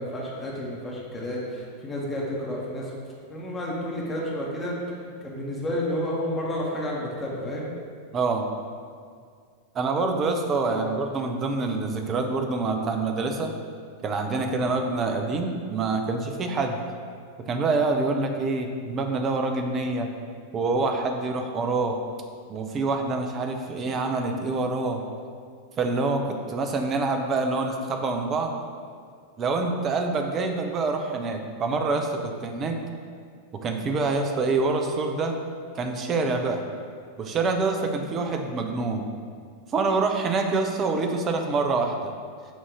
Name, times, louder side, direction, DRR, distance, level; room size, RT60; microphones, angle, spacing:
voice 1, 0.0-2.9 3.3-4.8 5.2-7.7 10.6-10.8, left 1 dB, 15° left, -4 dB, 1.1 m, -30 dB
voice 2, 8.1-8.5 9.7-13.5 14.0-16.8 17.5-20.1 20.5-22.0 22.5-25.0 25.8-28.6 29.4-32.8 33.6-35.4 35.7-36.6 37.2-39.1 39.7-42.1, right 3 dB, 25° right, 4 dB, 0.6 m, -26 dB
7.2 x 2.8 x 4.8 m, 2.1 s
figure-of-eight pair, 90°, 0 cm